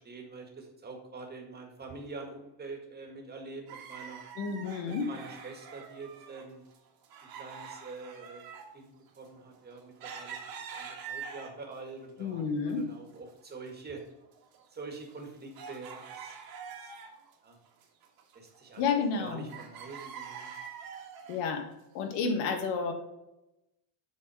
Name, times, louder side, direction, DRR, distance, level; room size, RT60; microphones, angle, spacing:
voice 1, 0.0-4.2 4.8-6.6 7.3-8.5 8.7-12.4 12.7-14.0 14.7-16.4 16.8-16.9 17.4-17.6 18.3-20.5, right 3 dB, 20° right, 2 dB, 1.7 m, -45 dB
sound 1, 3.7-6.5 6.7-11.8 12.3-13.2 13.4-13.5 14.1-17.3 17.7-19.2 19.5-21.5 22.1-22.2, right 6 dB, 45° right, 1.6 m, -45 dB
voice 2, 4.4-5.1 12.2-12.8 18.8-19.5 21.3-21.7 21.9-22.9, left 5 dB, 90° left, 5 dB, 1.7 m, -30 dB
7.2 x 4.3 x 4.8 m, 0.93 s
cardioid pair, 140°, 50 cm